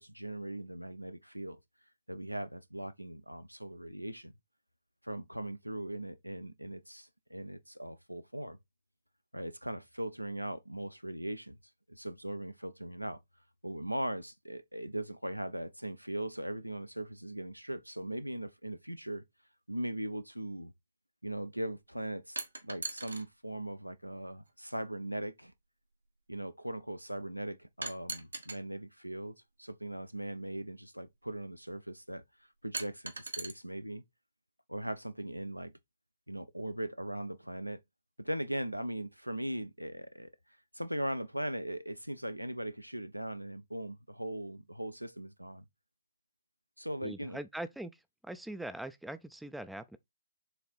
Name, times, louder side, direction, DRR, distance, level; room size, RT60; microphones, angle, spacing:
voice 1, 0.0-1.6 2.1-4.3 5.0-8.6 9.3-11.6 11.9-13.2 13.6-19.2 19.7-20.7 21.2-22.4 22.6-25.5 26.3-32.2 32.6-34.0 34.7-35.7 36.3-37.8 38.2-40.3 40.7-45.6 46.8-47.4, right 1 dB, 90° right, 0.9 m, -39 dB
sound 1, 22.4-23.2 24.5-24.6 27.8-28.6 30.1-30.2 32.7-33.5, right 3 dB, 75° right, 1.4 m, -39 dB
voice 2, 47.0-47.9 48.2-50.0, right 1 dB, ahead, 0.4 m, -41 dB
6.9 x 3.8 x 4.2 m
figure-of-eight pair, 130°, 0 cm